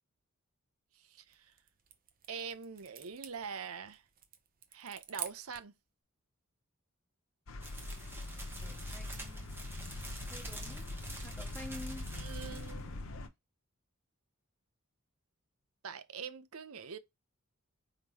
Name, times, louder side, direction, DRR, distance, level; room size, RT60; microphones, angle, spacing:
voice 1, 0.9-1.5 2.3-4.0 4.7-5.7 11.2-11.4 12.1-13.3 15.8-17.0, right 6 dB, 80° right, 0.7 m, -44 dB
sound 1, 1.1-5.8, right 9 dB, 40° right, 0.7 m, -49 dB
sound 2, 7.5-13.3, left 2 dB, 65° left, 0.8 m, -43 dB
sound 3, 7.6-12.8, right 1 dB, 10° right, 1.1 m, -48 dB
voice 2, 8.3-12.1 12.4-13.2, left 1 dB, 5° left, 0.5 m, -51 dB
4.9 x 3.6 x 2.9 m
head